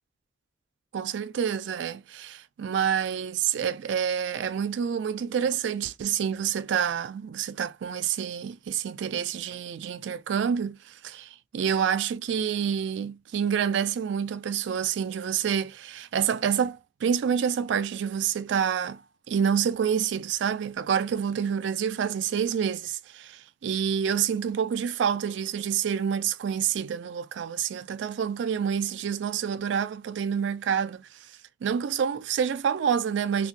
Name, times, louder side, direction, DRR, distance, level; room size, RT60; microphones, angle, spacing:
voice 1, 0.9-19.0 19.3-31.3 31.6-33.5, right 8 dB, 80° right, 0.3 m, -28 dB
2.5 x 2.2 x 3.8 m
head